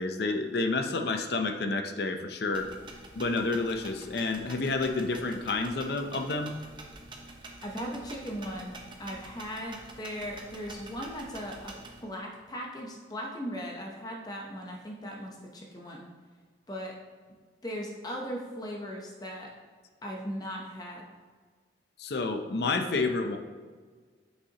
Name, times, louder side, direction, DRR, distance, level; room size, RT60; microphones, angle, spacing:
voice 1, 0.0-2.7 3.1-6.6 22.0-23.4, left 3 dB, 60° left, 6 dB, 0.5 m, -29 dB
sound 1, 2.5-12.0, right 2 dB, 25° right, 0.8 m, -47 dB
voice 2, 7.6-8.7 9.0-11.7 12.0-16.1 16.7-16.9 17.6-19.5 20.0-21.1, equal, 20° left, 0 dB, 0.7 m, -38 dB
8.1 x 6.3 x 2.8 m, 1.5 s
head